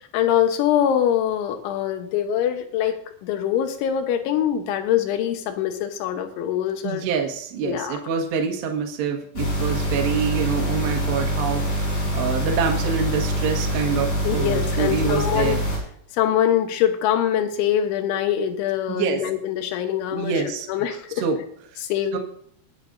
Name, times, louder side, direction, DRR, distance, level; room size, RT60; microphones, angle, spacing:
voice 1, 0.0-3.0 3.2-7.1 7.6-8.0 14.3-15.6 16.1-20.4 20.7-21.1 21.8-22.2, left 10 dB, 85° left, 7 dB, 3.6 m, -23 dB
voice 2, 6.8-15.6 18.9-19.2 20.1-20.7 21.2-21.4 21.7-21.8 22.1-22.2, right 6 dB, 70° right, 2 dB, 3.6 m, -26 dB
sound 1, 9.4-15.8, equal, 45° left, 7.1 m, -25 dB
21.5 x 9.1 x 2.7 m, 0.66 s
omnidirectional pair, 5.3 m